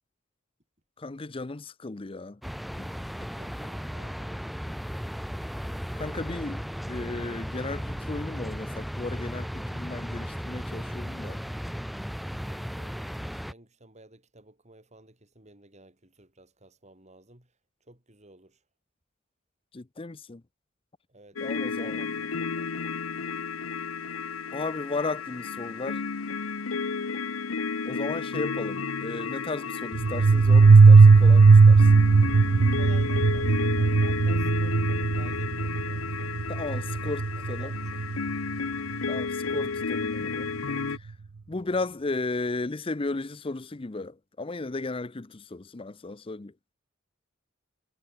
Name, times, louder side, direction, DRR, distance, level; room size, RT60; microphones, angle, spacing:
voice 1, 1.0-2.4 2.8-2.9 6.0-6.6 6.9-11.4 19.7-20.4 21.4-22.0 24.5-26.0 27.9-31.9 36.5-37.7 39.1-40.5 40.9-41.1 41.5-46.5, left 3 dB, 25° left, 0.6 m, -35 dB
sound 1, 2.4-13.5, equal, ahead, 1.1 m, -35 dB
voice 2, 3.3-4.5 12.4-17.5 17.8-18.6 21.1-22.8 32.5-36.4 37.0-38.0, right 2 dB, 35° right, 4.7 m, -53 dB
sound 2, 21.4-41.0, left 5 dB, 90° left, 0.9 m, -32 dB
sound 3, 29.9-38.3, right 4 dB, 85° right, 0.6 m, -17 dB
head